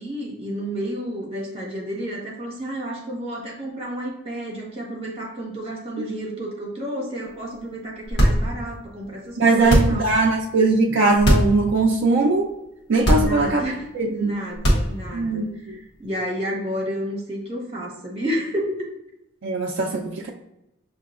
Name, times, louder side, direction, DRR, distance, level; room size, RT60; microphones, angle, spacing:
voice 1, 0.0-10.1 13.1-15.4 15.7-18.9, right 1 dB, 30° right, -3 dB, 1.2 m, -31 dB
sound 1, 8.0-8.8 9.6-10.2 11.1-11.6 12.0-12.1 13.0-13.6 14.5-15.2, equal, 65° left, 1.0 m, -19 dB
voice 2, 9.4-12.5 12.9-13.6 13.9-14.4 15.1-15.8 19.4-20.3, right 3 dB, 80° right, -2 dB, 0.4 m, -20 dB
5.7 x 2.8 x 2.4 m, 0.86 s
head